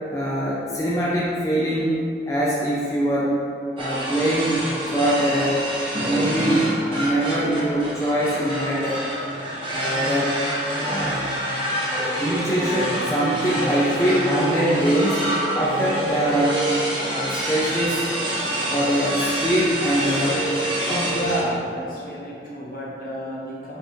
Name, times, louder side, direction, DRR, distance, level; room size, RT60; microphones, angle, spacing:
voice 1, 0.1-1.9 2.3-3.3 3.8-5.6 6.0-9.1 9.7-10.4 10.8-11.3 12.2-15.2 15.5-16.7 17.1-18.0 18.7-20.4 20.9-21.2, right 1 dB, 15° left, -7 dB, 0.5 m, -23 dB
sound 1, 3.8-21.4, right 1 dB, 30° right, 0.9 m, -27 dB
voice 2, 21.1-23.8, equal, 50° left, -6 dB, 1.4 m, -31 dB
4.9 x 4.4 x 4.6 m, 2.6 s
head